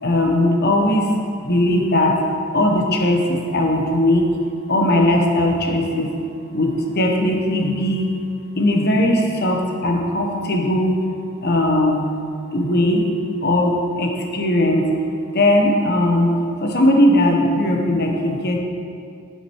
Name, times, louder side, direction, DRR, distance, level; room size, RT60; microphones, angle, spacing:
voice 1, 0.0-1.1 1.4-2.1 2.5-4.2 4.7-6.1 6.5-6.7 6.9-8.1 8.6-9.6 9.8-11.0 11.4-12.0 12.5-13.0 13.4-14.8 15.3-16.3 16.6-18.6, left 1 dB, 50° left, 2 dB, 1.2 m, -18 dB
9.4 x 7.8 x 4.7 m, 2.4 s
head